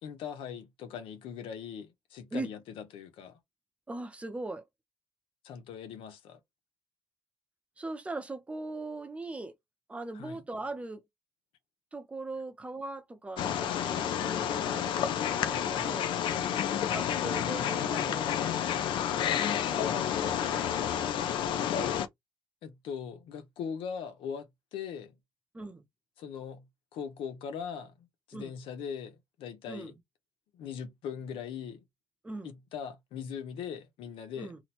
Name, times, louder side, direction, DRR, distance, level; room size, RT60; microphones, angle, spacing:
voice 1, 0.0-3.4 5.4-6.4 10.1-10.4 16.6-16.9 22.6-25.1 26.2-26.7 26.9-29.9 30.5-31.8 32.4-34.5, left 7 dB, 90° left, 0.9 m, -40 dB
voice 2, 3.9-4.6 7.8-9.6 9.9-11.0 11.9-16.1 16.9-18.5 19.6-22.0 25.5-25.8 28.3-28.5 29.7-29.9 32.2-32.5 34.4-34.6, right 2 dB, 15° right, 0.6 m, -40 dB
Wild animals, 13.4-22.1, left 9 dB, 65° left, 0.5 m, -30 dB
2.9 x 2.2 x 4.2 m
cardioid pair, 160°, 9 cm